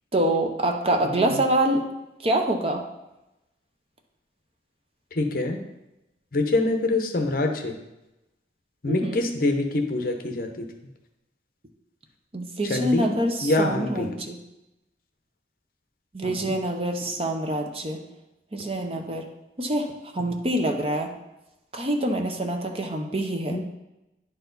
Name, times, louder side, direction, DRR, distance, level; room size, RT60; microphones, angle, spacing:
voice 1, 0.1-1.9 2.2-2.8 8.9-9.2 12.3-14.4 16.1-18.0 18.5-19.2 19.6-21.1 21.7-23.6, right 1 dB, 30° right, 3 dB, 0.7 m, -25 dB
voice 2, 1.0-1.4 5.1-5.6 6.3-7.8 8.8-10.7 12.6-14.1 16.2-16.6 23.5-23.6, left 2 dB, 50° left, 4 dB, 0.8 m, -25 dB
10.0 x 4.6 x 3.9 m, 0.95 s
head